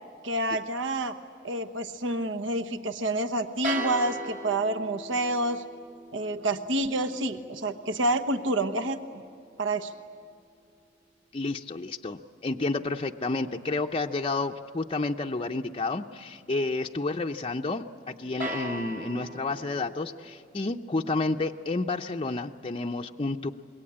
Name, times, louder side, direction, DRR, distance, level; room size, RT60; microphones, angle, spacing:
voice 1, 0.2-1.1 1.4-5.6 6.1-9.2 9.6-9.9, right 1 dB, 75° right, 9 dB, 1.1 m, -28 dB
sound 1, 3.6-9.8 18.4-20.3, right 1 dB, 50° right, 3.9 m, -39 dB
voice 2, 11.3-23.5, left 3 dB, 30° left, 3 dB, 0.6 m, -30 dB
26.5 x 22.0 x 8.8 m, 2.4 s
head